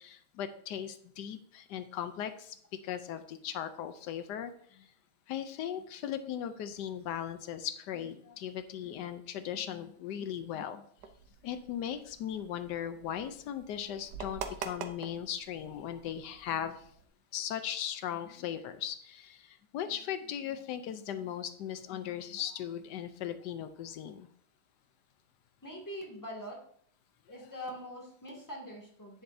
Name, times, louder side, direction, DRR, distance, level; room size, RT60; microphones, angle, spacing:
voice 1, 0.0-2.5 2.8-4.9 5.3-10.8 11.4-16.8 17.3-24.3, left 9 dB, 90° left, 10 dB, 1.3 m, -38 dB
sound 1, 11.0-17.1, right 6 dB, 85° right, 1.4 m, -46 dB
voice 2, 25.6-26.6 27.3-29.2, equal, 10° left, -2 dB, 2.2 m, -43 dB
10.5 x 8.8 x 2.7 m, 0.62 s
omnidirectional pair, 1.8 m